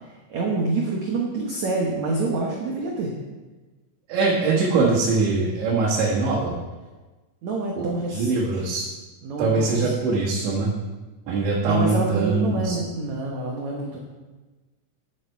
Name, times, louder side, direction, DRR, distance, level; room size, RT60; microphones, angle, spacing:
voice 1, 0.0-3.1 7.4-8.6 9.2-9.9 11.7-14.0, right 3 dB, 70° right, -1 dB, 1.7 m, -27 dB
voice 2, 4.1-6.5 7.8-8.9 9.4-10.7 11.3-12.8, right 3 dB, 85° right, -6 dB, 4.0 m, -22 dB
11.0 x 9.5 x 4.7 m, 1.2 s
omnidirectional pair, 5.0 m